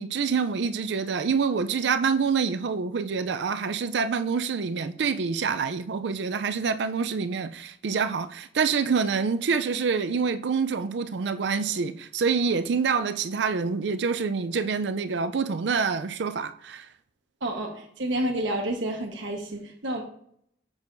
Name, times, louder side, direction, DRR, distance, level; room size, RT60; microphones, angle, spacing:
voice 1, 0.0-16.9, right 5 dB, 70° right, 0.4 m, -26 dB
voice 2, 17.4-20.0, right 1 dB, 85° right, 1.2 m, -29 dB
7.1 x 6.2 x 2.6 m
head